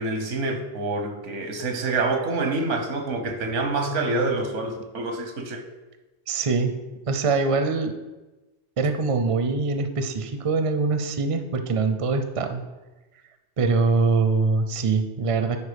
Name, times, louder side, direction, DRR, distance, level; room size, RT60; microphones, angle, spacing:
voice 1, 0.0-5.7, right 3 dB, 85° right, 5 dB, 1.3 m, -27 dB
voice 2, 6.3-6.7 7.1-7.9 8.8-12.6 13.6-15.6, right 4 dB, 35° right, 7 dB, 0.6 m, -23 dB
9.8 x 4.3 x 5.1 m, 1.1 s
omnidirectional pair, 1.2 m